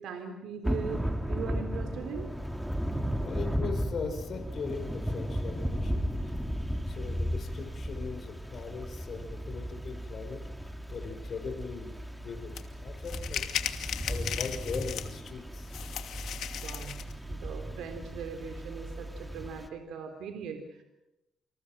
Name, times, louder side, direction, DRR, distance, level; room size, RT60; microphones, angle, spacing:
voice 1, 0.0-2.3 16.6-17.0 17.3-20.8, right 6 dB, 85° right, 5 dB, 3.7 m, -40 dB
Thunder / Rain, 0.6-19.7, equal, 5° right, 2.3 m, -35 dB
voice 2, 3.2-6.1 6.9-13.4 14.0-15.7, left 5 dB, 50° left, 6 dB, 5.7 m, -40 dB
sound 1, 12.6-12.7 13.0-15.3 15.7-17.1, left 10 dB, 75° left, 2.5 m, -36 dB
29.0 x 26.5 x 6.1 m, 0.92 s
cardioid pair, 130°, 0 cm